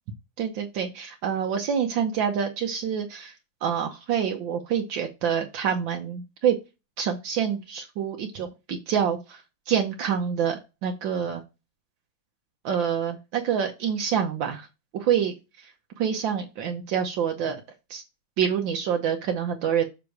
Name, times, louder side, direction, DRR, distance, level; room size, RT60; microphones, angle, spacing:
voice 1, 0.4-3.3 3.6-6.5 7.0-9.4 9.7-11.4 12.6-14.7 14.9-15.3 16.0-17.6 17.9-18.0 18.4-19.9, right 8 dB, 75° right, 3 dB, 1.6 m, -26 dB
7.1 x 3.8 x 4.6 m, 0.26 s
omnidirectional pair, 2.2 m